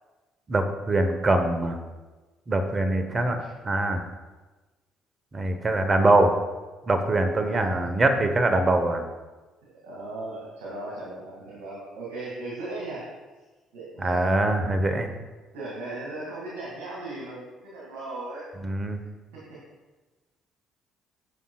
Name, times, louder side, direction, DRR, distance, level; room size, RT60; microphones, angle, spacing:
voice 1, 0.5-1.8 2.5-4.0 5.3-6.3 6.9-9.0 14.0-15.1 18.6-19.0, right 2 dB, 35° right, 7 dB, 1.0 m, -23 dB
voice 2, 3.0-3.5 7.4-7.7 9.6-13.1 13.7-14.3 15.5-18.5 18.9-19.0 19.3-19.6, right 2 dB, 75° right, -6 dB, 2.2 m, -37 dB
13.5 x 5.5 x 2.3 m, 1.2 s
hypercardioid pair, 55°, 0 cm